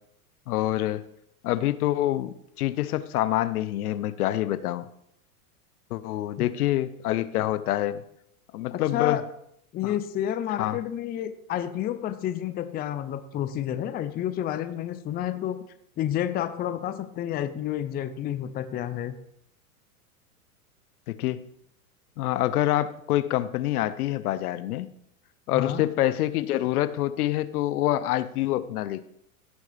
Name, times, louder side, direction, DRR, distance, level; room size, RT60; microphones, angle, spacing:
voice 1, 0.5-1.0 1.4-4.9 5.9-8.0 8.5-9.2 9.8-9.9 10.6-10.8 21.1-21.5 22.2-24.9 25.5-29.1, left 14 dB, 75° left, 15 dB, 0.8 m, -26 dB
voice 2, 8.7-9.2 9.7-15.6 16.0-19.1 25.5-25.8, left 11 dB, 20° left, 11 dB, 0.5 m, -30 dB
16.0 x 6.3 x 3.4 m, 0.73 s
hypercardioid pair, 125°, 45 cm